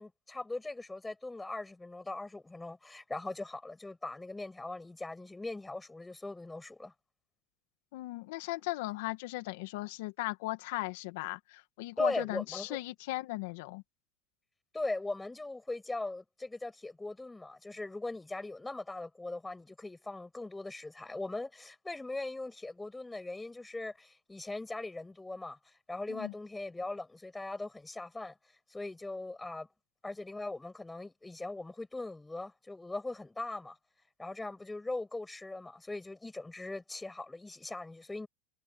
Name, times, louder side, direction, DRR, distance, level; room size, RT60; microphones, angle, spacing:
voice 1, 0.0-6.9 12.0-12.8 14.7-28.4 28.7-29.7 30.0-33.8 34.2-38.3, left 2 dB, 5° left, 7.8 m, -40 dB
voice 2, 7.9-13.8 26.1-26.3, left 19 dB, 70° left, 1.8 m, -37 dB
supercardioid pair, 155°, 0 cm